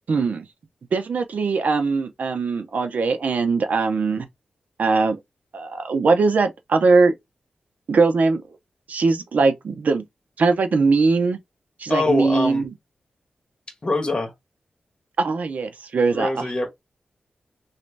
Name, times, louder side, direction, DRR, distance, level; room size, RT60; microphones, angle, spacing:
voice 1, 0.1-0.4 0.9-4.3 4.8-5.2 5.5-7.1 7.9-8.4 8.9-10.1 10.4-11.4 11.8-12.7 15.2-16.5, right 4 dB, 65° right, 0.7 m, -20 dB
voice 2, 11.9-12.6 13.8-14.3 16.1-16.7, left 2 dB, 30° left, 1.3 m, -23 dB
3.1 x 2.7 x 3.3 m
wide cardioid pair, 115°, 3 cm